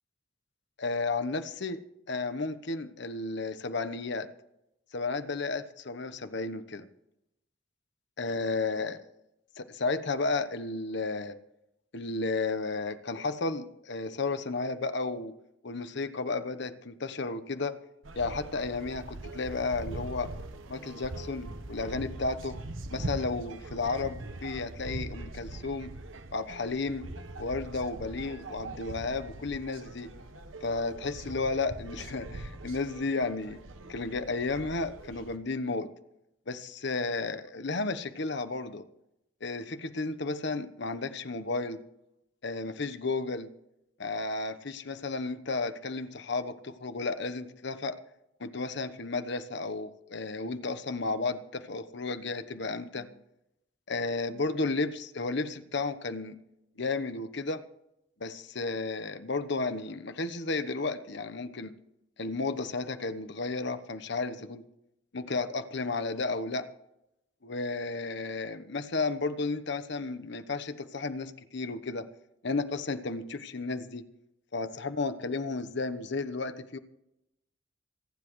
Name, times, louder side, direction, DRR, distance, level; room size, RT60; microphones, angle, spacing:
voice 1, 0.8-4.3 4.9-6.9 8.2-9.0 9.6-11.4 11.9-15.3 15.6-17.8 18.2-20.3 20.7-22.6 22.9-25.9 26.3-27.1 27.4-30.1 30.6-33.6 33.9-35.9 36.5-38.9 39.4-41.8 42.4-43.5 44.0-48.0 48.4-53.1 53.9-56.4 56.8-57.6 58.2-61.7 62.2-64.6 65.1-66.7 67.4-72.1 72.4-74.0 74.5-76.8, left 3 dB, 60° left, 11 dB, 1.0 m, -33 dB
sound 1, 18.0-35.4, right 2 dB, 85° right, 1.1 m, -42 dB
27.0 x 10.0 x 3.1 m, 0.83 s
head